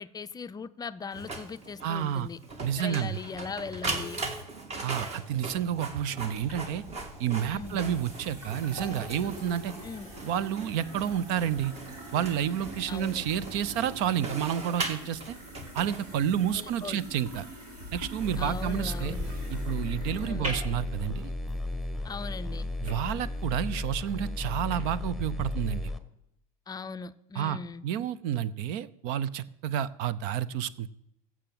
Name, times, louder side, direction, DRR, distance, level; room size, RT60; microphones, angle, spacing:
voice 1, 0.0-2.4 2.8-4.2 7.5-7.8 9.8-10.1 12.9-13.3 16.5-17.0 18.4-19.3 20.2-20.6 22.0-22.7 26.7-27.8, left 5 dB, 20° left, 11 dB, 0.5 m, -39 dB
Printer, 1.1-16.5, right 3 dB, 35° right, 2.2 m, -40 dB
voice 2, 1.8-2.3 2.6-3.1 4.8-6.8 7.2-9.7 10.2-11.7 12.1-15.4 15.7-17.4 17.9-19.1 19.5-21.3 22.8-25.9 27.4-27.6 27.8-30.9, right 9 dB, 55° right, 19 dB, 0.7 m, -30 dB
sound 1, 6.3-24.8, equal, 85° right, 5.4 m, -44 dB
sound 2, 18.2-26.0, left 2 dB, ahead, 1.2 m, -34 dB
15.0 x 6.2 x 7.8 m, 0.82 s
hypercardioid pair, 85°, 19 cm